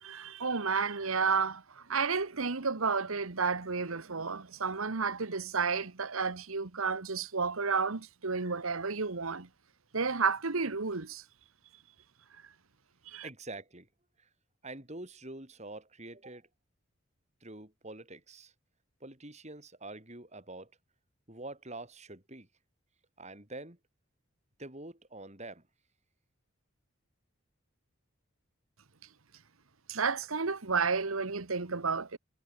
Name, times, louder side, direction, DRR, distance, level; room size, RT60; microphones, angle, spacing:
voice 1, 0.0-9.5 9.9-11.2 13.1-13.3 29.9-32.2, right 5 dB, 80° right, 1.3 m, -31 dB
voice 2, 13.2-13.9 14.2-14.3 14.6-16.5 17.4-18.5 19.0-20.7 21.3-22.5 23.2-23.8 24.6-25.6, right 2 dB, 30° right, 4.3 m, -46 dB
head